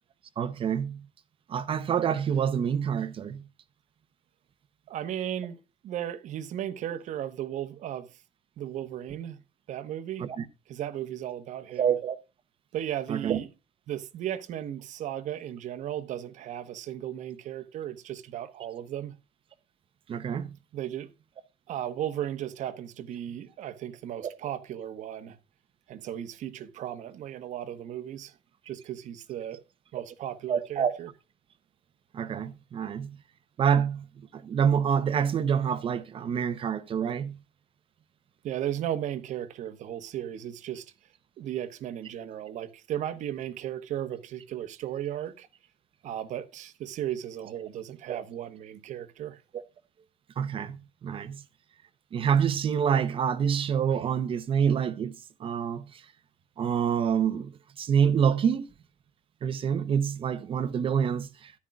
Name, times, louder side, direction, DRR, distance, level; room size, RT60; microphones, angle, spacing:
voice 1, 0.4-1.1 1.5-3.5 10.2-10.4 11.8-12.2 13.1-13.4 20.1-20.6 24.2-24.3 30.5-30.9 32.1-33.2 33.6-34.1 34.3-37.4 48.1-48.2 49.5-49.6 50.4-51.4 52.1-55.1 55.4-56.1 56.6-58.7 59.4-61.5, right 7 dB, 40° right, 0.7 m, -27 dB
voice 2, 4.9-8.1 8.6-9.4 9.7-10.3 10.7-11.9 12.7-13.5 13.9-19.2 20.7-21.1 21.7-25.4 25.9-28.4 28.7-29.6 29.9-31.1 38.4-40.9 41.4-45.5 46.0-49.4, right 11 dB, 60° right, 1.0 m, -35 dB
13.0 x 10.5 x 2.3 m
cardioid pair, 165°, 14 cm